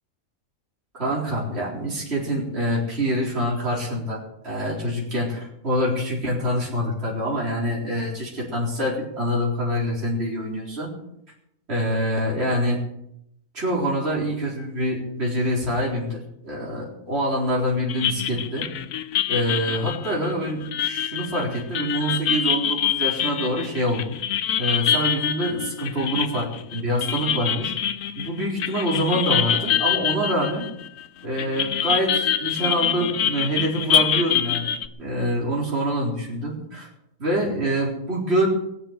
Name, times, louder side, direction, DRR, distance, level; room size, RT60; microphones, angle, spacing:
voice 1, 0.9-10.9 11.7-12.8 13.5-16.2 16.4-18.7 19.3-24.2 24.6-27.7 28.1-30.7 31.2-36.9 37.2-38.5, equal, 50° right, -5 dB, 4.4 m, -25 dB
sound 1, 17.9-31.0 31.4-34.9, left 9 dB, 75° left, 1.1 m, -25 dB
22.0 x 8.1 x 6.5 m, 0.80 s
omnidirectional pair, 1.4 m